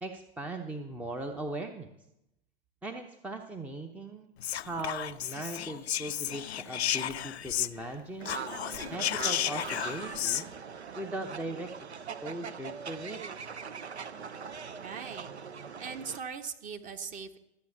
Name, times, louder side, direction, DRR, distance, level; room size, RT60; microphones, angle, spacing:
voice 1, 0.0-1.9 2.8-4.3 4.6-8.4 8.9-10.5 10.9-11.7 12.0-13.2, right 2 dB, 5° right, 5 dB, 0.6 m, -39 dB
Whispering, 4.4-7.9 8.2-10.4, left 11 dB, 75° left, 0.5 m, -33 dB
sound 1, 8.2-16.2, right 6 dB, 80° right, 0.7 m, -41 dB
voice 2, 14.7-15.3 15.8-17.4, right 6 dB, 25° right, 7 dB, 1.0 m, -40 dB
12.5 x 7.6 x 7.1 m, 0.87 s
figure-of-eight pair, 100°, 33 cm